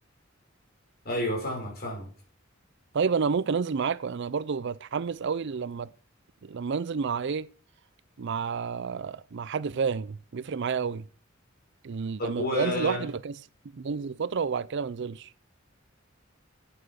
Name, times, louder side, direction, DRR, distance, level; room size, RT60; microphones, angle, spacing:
voice 1, 1.0-2.1 12.2-13.1, left 1 dB, 50° left, 5.5 m, -30 dB
voice 2, 2.9-5.9 6.4-7.5 8.2-11.1 11.8-13.3 13.7-15.3, right 5 dB, 60° right, 0.5 m, -30 dB
8.9 x 8.8 x 6.6 m
head